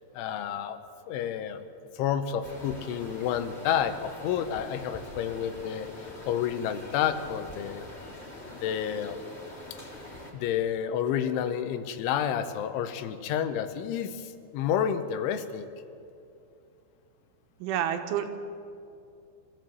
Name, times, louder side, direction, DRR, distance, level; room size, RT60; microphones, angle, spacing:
voice 1, 0.2-0.8 1.1-1.6 2.0-7.8 8.6-9.2 10.3-15.7, left 9 dB, 85° left, 10 dB, 3.4 m, -30 dB
sound 1, 2.4-10.3, left 1 dB, 15° left, 2.5 m, -44 dB
voice 2, 17.6-18.3, right 10 dB, 85° right, 7 dB, 3.6 m, -29 dB
23.5 x 14.5 x 7.8 m, 2.5 s
omnidirectional pair, 5.4 m